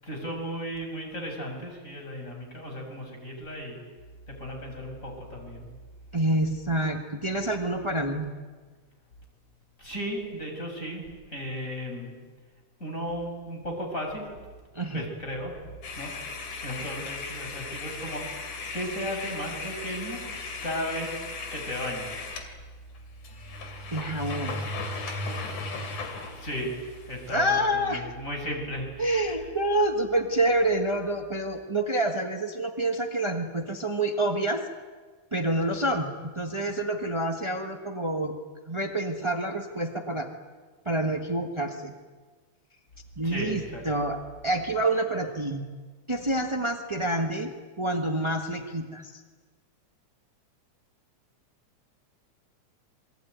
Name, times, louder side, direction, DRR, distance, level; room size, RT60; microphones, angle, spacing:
voice 1, 0.0-3.8 4.3-5.7 9.8-12.1 12.8-14.3 14.9-15.5 16.0-18.4 18.7-20.2 20.6-21.2 21.5-22.3 26.4-26.7 27.1-29.4 43.2-43.8, equal, 25° left, 2 dB, 6.7 m, -35 dB
voice 2, 6.1-8.3 14.7-15.0 23.9-24.6 27.3-28.0 29.0-34.6 35.3-38.3 38.7-40.3 40.8-41.9 43.2-45.6 46.1-47.5 47.8-49.1, right 1 dB, 35° right, 4 dB, 0.4 m, -27 dB
sound 1, 15.8-22.5 23.0-23.1 23.2-27.4, left 3 dB, 85° left, 4.1 m, -37 dB
27.5 x 22.5 x 9.4 m, 1.4 s
omnidirectional pair, 3.4 m